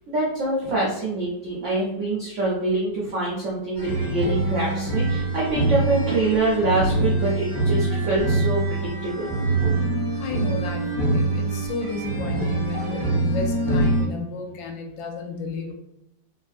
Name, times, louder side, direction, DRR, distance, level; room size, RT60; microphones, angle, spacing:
voice 1, 0.1-9.3, right 2 dB, 80° right, -4 dB, 0.6 m, -25 dB
sound 1, 3.8-14.0, right 2 dB, 55° left, 1.5 m, -24 dB
voice 2, 10.2-15.7, left 4 dB, 85° left, 2 dB, 1.3 m, -32 dB
3.3 x 2.3 x 2.4 m, 0.82 s
omnidirectional pair, 2.0 m